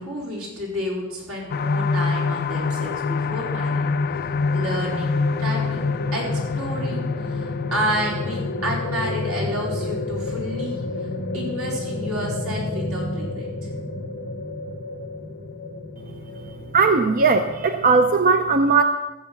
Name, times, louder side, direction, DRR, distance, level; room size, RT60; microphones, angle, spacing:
voice 1, 0.0-4.2 4.5-10.8 11.3-13.5, equal, 85° right, -3 dB, 4.0 m, -30 dB
sound 1, 1.5-15.0 15.4-15.5 15.9-16.0, left 4 dB, 45° left, 0.4 m, -28 dB
sound 2, 2.7-18.1, left 2 dB, 60° left, 4.4 m, -32 dB
voice 2, 16.7-18.8, right 4 dB, 40° right, 7 dB, 0.6 m, -18 dB
15.5 x 7.1 x 5.7 m, 1.1 s
head